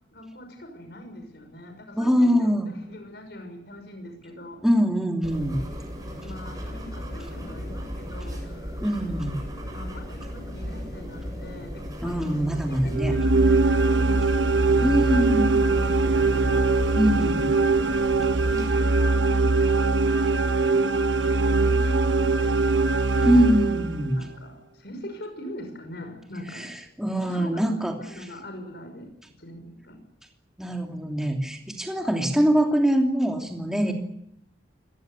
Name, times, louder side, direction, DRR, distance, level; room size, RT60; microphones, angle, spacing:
voice 1, 0.1-4.6 6.2-8.9 9.7-17.0 17.2-17.3 17.6-17.9 18.3-22.9 24.1-26.7 27.2-29.1 29.4-30.0 33.7-33.9, left 1 dB, 55° left, 5 dB, 6.2 m, -42 dB
voice 2, 2.0-2.7 4.6-5.6 8.8-9.4 12.0-13.2 14.8-15.6 17.0-17.5 23.2-24.2 26.5-26.7 27.0-27.9 30.6-33.9, equal, 5° right, 2 dB, 2.8 m, -23 dB
sound 1, 5.2-18.6, equal, 20° right, 7.4 m, -36 dB
sound 2, 12.9-24.2, right 3 dB, 75° right, 1.1 m, -22 dB
26.0 x 19.5 x 8.3 m, 0.74 s
head